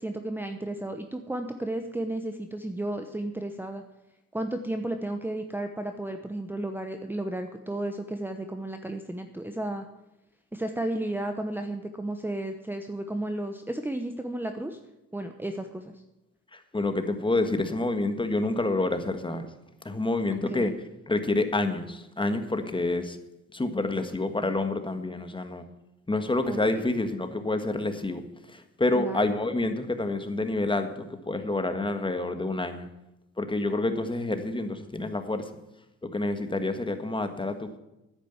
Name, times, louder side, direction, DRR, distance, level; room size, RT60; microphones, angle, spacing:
voice 1, 0.0-3.8 4.3-9.8 10.5-14.8 15.1-15.9 20.5-20.7 24.0-24.1 26.4-26.8 28.9-29.2, right 1 dB, 5° right, 6 dB, 0.9 m, -33 dB
voice 2, 16.5-19.5 19.8-20.7 21.1-23.2 23.5-25.6 26.1-28.2 28.5-32.8 33.4-35.5 36.1-37.8, left 2 dB, 15° left, 8 dB, 1.5 m, -28 dB
10.0 x 9.0 x 8.0 m, 0.93 s
cardioid pair, 90°, 30 cm